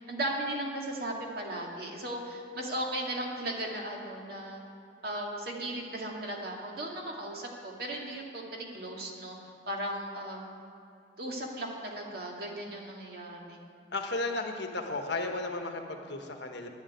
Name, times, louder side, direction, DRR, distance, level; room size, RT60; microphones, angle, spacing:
voice 1, 0.1-4.6 5.0-9.4 9.7-10.5 11.2-13.6, right 1 dB, 55° right, -1 dB, 2.0 m, -36 dB
voice 2, 13.9-16.7, left 2 dB, 75° left, 4 dB, 1.2 m, -34 dB
11.0 x 7.3 x 9.4 m, 2.6 s
head